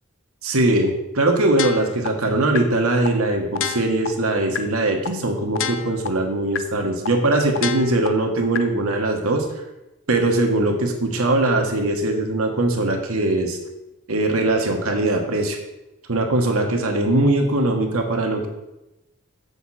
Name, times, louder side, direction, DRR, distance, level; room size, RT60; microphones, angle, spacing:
voice 1, 0.4-9.4 10.1-13.6 14.1-15.6 16.1-18.5, right 2 dB, 80° right, 2 dB, 1.4 m, -21 dB
sound 1, 1.6-2.1 2.5-2.6 3.0-3.1 3.5-4.1 4.5-4.6 5.0-5.1 5.5-6.1 6.5-6.6 7.0-7.1 7.5-8.1 8.5-8.6, left 8 dB, 65° left, 0.5 m, -26 dB
7.6 x 6.8 x 4.2 m, 0.96 s
head